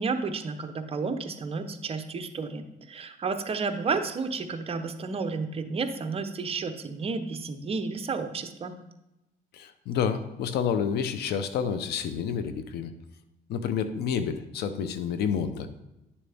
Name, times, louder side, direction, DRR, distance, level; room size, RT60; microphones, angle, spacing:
voice 1, 0.0-8.8, right 4 dB, 35° right, 7 dB, 0.9 m, -31 dB
voice 2, 9.5-12.9 13.5-15.7, left 7 dB, 70° left, 11 dB, 0.8 m, -29 dB
10.5 x 7.1 x 3.5 m, 0.95 s
cardioid pair, 110°, 17 cm